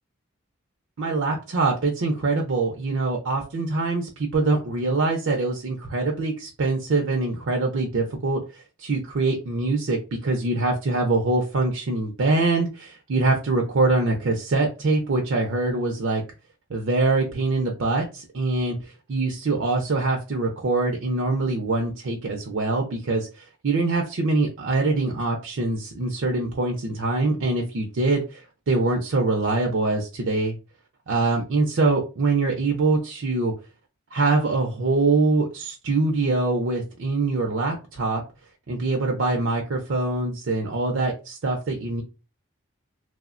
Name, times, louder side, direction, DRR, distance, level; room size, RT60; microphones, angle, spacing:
voice 1, 1.0-16.2 16.7-30.5 31.1-33.5 34.1-38.2 38.7-42.0, right 3 dB, 65° right, 1 dB, 0.5 m, -24 dB
3.1 x 2.0 x 2.4 m, 0.30 s
head